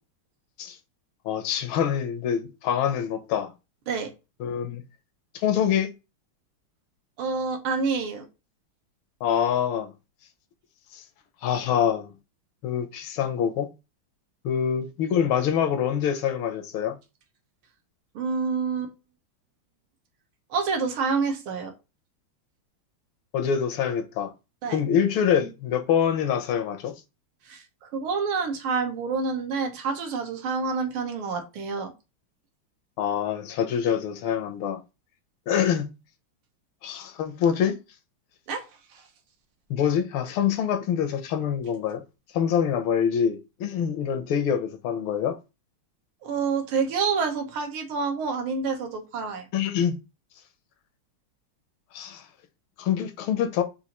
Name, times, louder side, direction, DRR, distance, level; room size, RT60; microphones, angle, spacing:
voice 1, 1.2-3.5 4.4-4.8 5.3-5.9 9.2-9.9 10.9-11.0 11.4-12.1 12.6-13.7 14.4-17.0 23.3-24.3 24.7-26.9 33.0-34.8 35.5-36.0 36.8-37.8 39.7-42.0 42.3-45.4 49.5-49.9 51.9-52.2 52.8-53.6, left 8 dB, 80° left, 1.5 m, -25 dB
voice 2, 7.2-8.3 18.2-18.9 20.5-21.7 24.6-24.8 27.5-31.9 38.5-38.6 38.9-39.0 46.2-49.5, right 5 dB, 80° right, 1.8 m, -28 dB
5.5 x 2.5 x 2.9 m
omnidirectional pair, 2.3 m